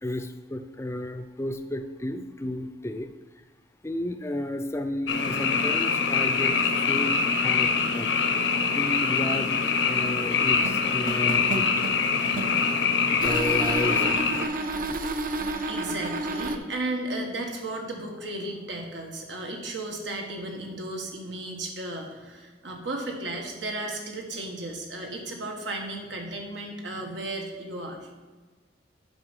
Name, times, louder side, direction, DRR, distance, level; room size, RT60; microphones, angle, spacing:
voice 1, 0.0-3.1 3.8-8.1 8.7-9.5 9.9-11.7 13.1-14.3, left 1 dB, 15° left, 7 dB, 0.4 m, -32 dB
Frog, 5.1-14.4, left 5 dB, 85° left, 0.9 m, -24 dB
sound 1, 10.6-12.7 13.2-16.6, right 2 dB, 50° right, 0.6 m, -31 dB
voice 2, 15.4-28.0, right 2 dB, 90° right, 1 dB, 1.6 m, -34 dB
7.9 x 5.4 x 5.3 m, 1.4 s
head